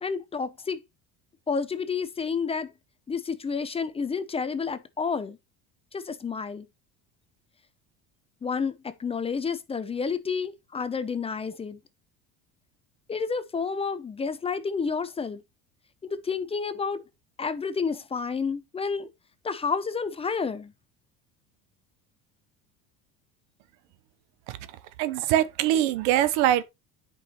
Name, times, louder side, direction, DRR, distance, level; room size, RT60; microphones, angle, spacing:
voice 1, 0.0-0.8 1.5-2.7 3.1-5.4 5.9-6.7 8.4-11.8 13.1-15.4 16.1-17.0 17.4-19.1 19.4-20.7, left 5 dB, 15° left, 0.5 m, -30 dB
voice 2, 25.0-26.6, right 12 dB, 85° right, 0.9 m, -23 dB
9.6 x 5.3 x 3.0 m
supercardioid pair, 125°, 35 cm